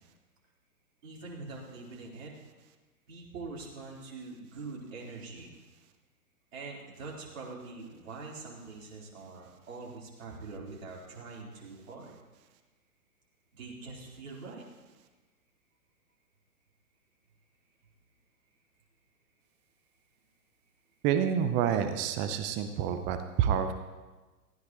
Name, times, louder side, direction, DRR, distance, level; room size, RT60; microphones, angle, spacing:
voice 1, 1.0-2.3 3.1-5.6 6.5-12.1 13.5-14.6, right 3 dB, 55° right, -4 dB, 4.3 m, -44 dB
voice 2, 21.0-23.7, right 8 dB, 25° right, 8 dB, 0.8 m, -28 dB
19.0 x 15.0 x 3.1 m, 1.2 s
figure-of-eight pair, 110°, 45 cm